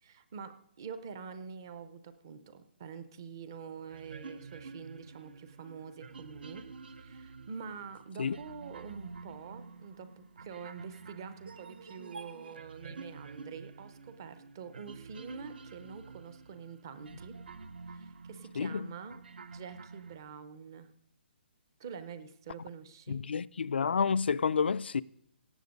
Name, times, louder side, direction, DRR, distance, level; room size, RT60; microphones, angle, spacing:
voice 1, 0.0-6.6 7.0-17.3 17.9-19.2 19.5-20.9 21.8-23.2, right 6 dB, 20° right, 0.6 m, -46 dB
sound 1, 3.9-20.2, right 4 dB, 60° right, 0.7 m, -49 dB
voice 2, 18.6-18.9 23.1-25.0, left 6 dB, 65° left, 0.4 m, -29 dB
17.0 x 6.9 x 5.3 m
hypercardioid pair, 180°, 6 cm